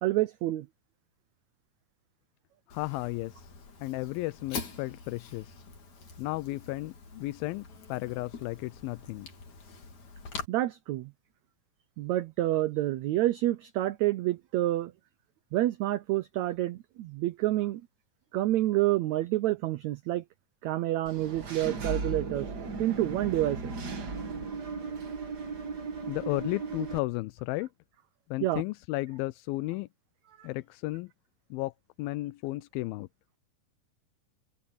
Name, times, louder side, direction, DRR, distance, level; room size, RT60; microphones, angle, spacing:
voice 1, 0.0-0.7 10.5-11.1 12.0-14.9 15.5-17.8 18.3-20.2 20.6-22.5 22.8-23.7 28.4-28.6 30.4-30.5, right 15 dB, 85° right, 1.6 m, -28 dB
voice 2, 2.7-3.5 3.8-5.6 6.2-9.3 26.0-27.7 28.3-29.9 30.4-31.1 31.5-31.7 32.0-33.1, left 20 dB, 85° left, 2.4 m, -34 dB
Fire, 2.7-10.4, left 5 dB, 55° left, 4.7 m, -44 dB
Engine / Mechanisms, 21.1-27.0, right 4 dB, 40° right, 1.6 m, -36 dB
omnidirectional pair, 4.1 m